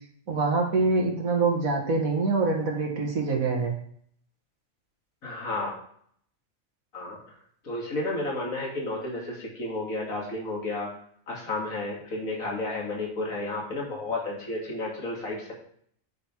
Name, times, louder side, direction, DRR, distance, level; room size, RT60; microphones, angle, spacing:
voice 1, 0.3-3.7, right 3 dB, 90° right, 0 dB, 2.1 m, -25 dB
voice 2, 5.2-5.7 6.9-7.2 7.6-10.9 11.3-15.5, left 2 dB, 80° left, -3 dB, 2.7 m, -32 dB
9.2 x 5.6 x 4.6 m, 0.63 s
omnidirectional pair, 1.4 m